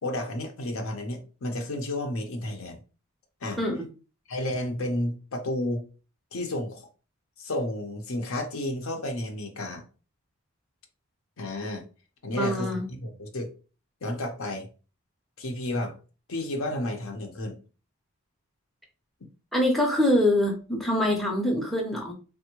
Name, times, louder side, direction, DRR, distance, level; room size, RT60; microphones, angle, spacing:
voice 1, 0.0-2.8 3.4-3.6 4.3-5.9 6.3-6.9 7.4-9.8 11.4-11.8 12.2-13.5 14.0-14.7 15.4-15.9 16.3-17.6, left 1 dB, 70° left, 0.7 m, -31 dB
voice 2, 3.6-3.9 12.3-12.9 19.5-22.1, left 1 dB, ahead, 0.5 m, -24 dB
3.4 x 2.1 x 2.9 m
head